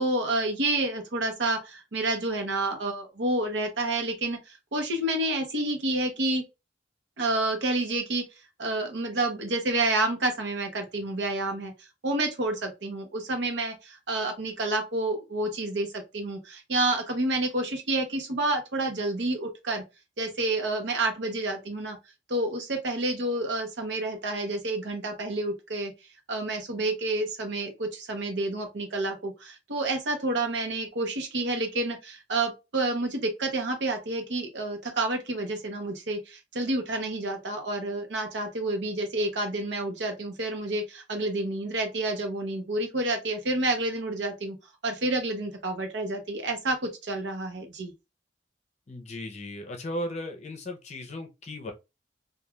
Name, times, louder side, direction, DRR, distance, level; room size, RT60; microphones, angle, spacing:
voice 1, 0.0-6.4 7.2-8.2 8.6-19.8 20.2-22.0 22.3-25.9 26.3-44.6 44.8-47.9, right 2 dB, 75° right, 0.8 m, -29 dB
voice 2, 48.9-51.7, left 1 dB, 40° left, 0.6 m, -36 dB
2.3 x 2.3 x 3.1 m
head